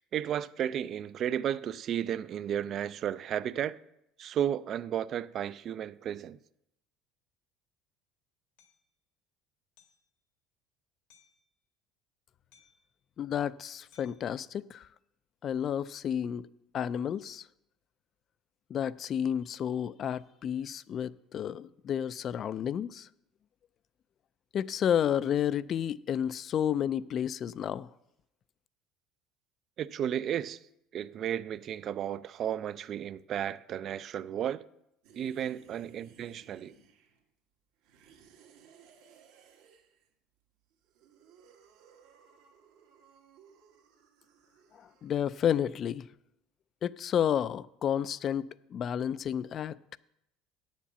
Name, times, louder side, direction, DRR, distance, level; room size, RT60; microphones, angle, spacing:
voice 1, 0.1-3.8 4.2-6.4 29.8-30.6 30.9-34.6 35.1-36.7, right 10 dB, 45° right, 0.4 m, -33 dB
Hammer, 8.6-8.8 9.8-10.1 11.1-11.4 12.5-12.9 13.9-14.3, left 7 dB, 80° left, 1.4 m, -63 dB
voice 2, 13.2-14.9 15.4-16.5 16.7-17.4 18.7-23.1 24.5-27.9 44.8-46.1 46.8-50.0, left 9 dB, 45° left, 0.3 m, -31 dB
sound 1, 35.0-37.3 37.8-40.1 40.7-45.4, right 6 dB, 80° right, 1.7 m, -60 dB
8.6 x 7.4 x 7.0 m
supercardioid pair, 115°, 0 cm